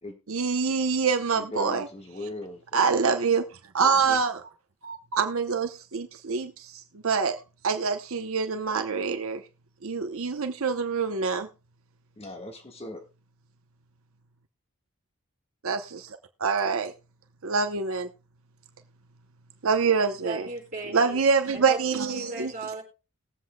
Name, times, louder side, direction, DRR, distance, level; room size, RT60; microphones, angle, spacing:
voice 1, 0.3-1.9 2.7-3.4 3.7-4.4 4.8-9.4 9.8-11.5 15.6-16.9 17.4-18.1 19.6-20.5 20.9-22.5, right 5 dB, 75° right, 0.8 m, -26 dB
voice 2, 1.3-2.9 3.8-4.2 12.2-13.0, left 1 dB, 25° left, 1.5 m, -39 dB
voice 3, 20.2-21.2 21.5-22.8, right 2 dB, 40° right, 3.7 m, -37 dB
20.5 x 7.7 x 2.2 m
head